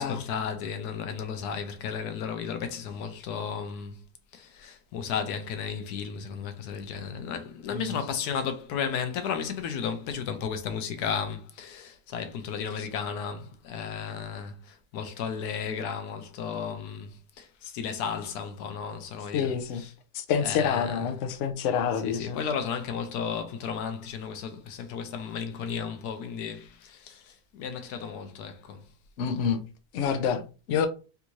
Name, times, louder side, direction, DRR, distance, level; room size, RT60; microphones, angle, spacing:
voice 1, 0.0-4.0 4.3-19.9 20.4-21.1 22.0-28.9, left 6 dB, 90° left, 1.2 m, -34 dB
voice 2, 19.3-19.8 20.1-22.4 29.2-29.6 29.9-30.9, left 7 dB, 65° left, 0.8 m, -28 dB
3.5 x 2.6 x 3.0 m
omnidirectional pair, 1.6 m